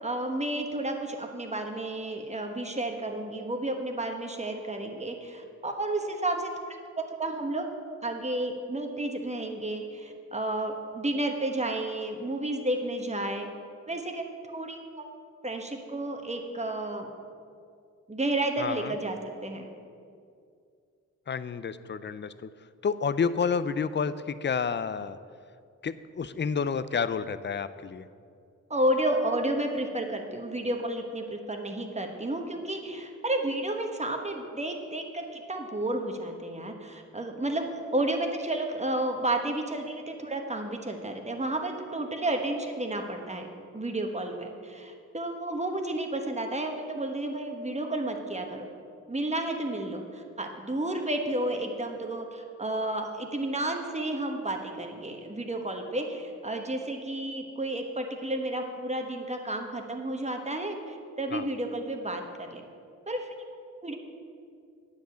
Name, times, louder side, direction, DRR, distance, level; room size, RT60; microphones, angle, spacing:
voice 1, 0.0-6.5 7.0-7.7 8.0-13.5 13.9-14.2 14.5-15.1 15.4-17.1 18.1-19.7 28.7-43.5 43.7-48.7 49.1-62.6 63.1-63.3 63.8-63.9, right 1 dB, 20° right, 3 dB, 1.2 m, -31 dB
voice 2, 18.6-18.9 21.3-22.5 22.8-25.2 25.8-28.1 61.3-61.5, left 6 dB, 35° left, 14 dB, 0.5 m, -30 dB
9.0 x 5.3 x 7.9 m, 2.3 s
cardioid pair, 65°, 31 cm